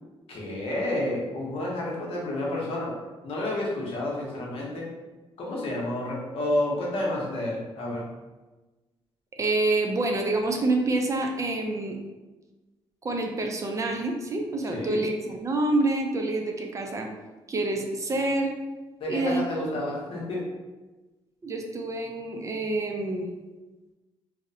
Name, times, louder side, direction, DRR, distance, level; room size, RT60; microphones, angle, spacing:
voice 1, 0.3-2.9 3.2-4.9 5.4-8.1 14.7-15.0 19.0-20.5, left 1 dB, 65° left, -3 dB, 0.8 m, -30 dB
voice 2, 9.4-12.0 13.0-17.1 17.5-18.5 19.1-19.4 21.4-23.3, right 2 dB, 30° right, 2 dB, 0.4 m, -27 dB
2.7 x 2.0 x 2.6 m, 1.2 s
cardioid pair, 85°, 10 cm